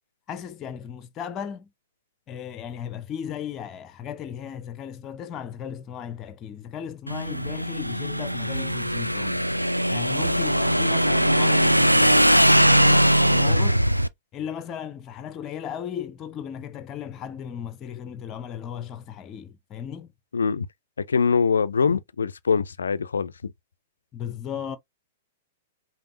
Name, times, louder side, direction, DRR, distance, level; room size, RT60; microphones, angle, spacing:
voice 1, 0.3-1.7 2.3-9.5 9.9-13.8 14.3-20.1 24.1-24.8, left 8 dB, 25° left, 0.6 m, -36 dB
Motorcycle / Engine, 7.1-14.1, equal, 90° right, 0.3 m, -20 dB
voice 2, 20.3-20.7 21.0-23.5, left 5 dB, 70° left, 0.4 m, -23 dB
5.2 x 3.0 x 2.6 m
figure-of-eight pair, 105°, 0 cm